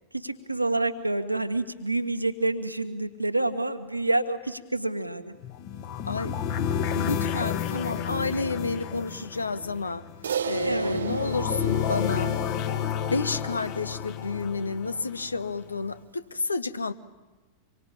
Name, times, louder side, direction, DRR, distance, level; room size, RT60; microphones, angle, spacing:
voice 1, 0.1-5.3 10.6-11.0, right 2 dB, 90° right, 8 dB, 1.6 m, -28 dB
sound 1, 5.4-15.5, left 8 dB, 45° left, 2.0 m, -31 dB
voice 2, 6.9-10.0 10.5-12.4 12.9-16.9, left 3 dB, 80° left, 14 dB, 1.1 m, -30 dB
Crash cymbal, 10.2-14.8, right 8 dB, 65° right, 0.9 m, -35 dB
26.5 x 23.5 x 8.9 m, 1.2 s
figure-of-eight pair, 90°, 0 cm